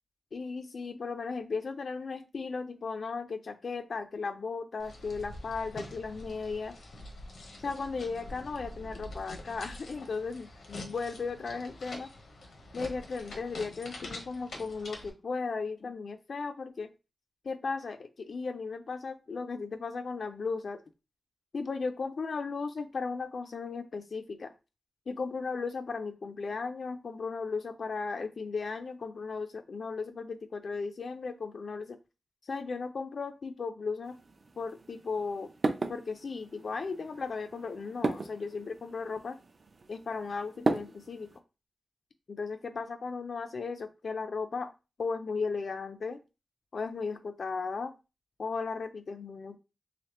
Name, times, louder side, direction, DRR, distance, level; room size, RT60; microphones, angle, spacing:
voice 1, 0.3-6.8 7.6-12.1 12.7-16.9 17.4-20.8 21.5-24.5 25.1-32.0 32.4-34.2 34.6-35.5 35.9-39.4 39.9-41.3 42.3-44.7 45.0-46.2 46.7-47.9 48.4-49.6, left 4 dB, 65° left, 8 dB, 0.3 m, -36 dB
sound 1, 4.8-15.1, left 1 dB, 90° left, 0.8 m, -45 dB
sound 2, 34.0-41.4, right 3 dB, 50° right, 0.5 m, -37 dB
3.2 x 3.1 x 2.9 m, 0.29 s
wide cardioid pair, 130°, 0 cm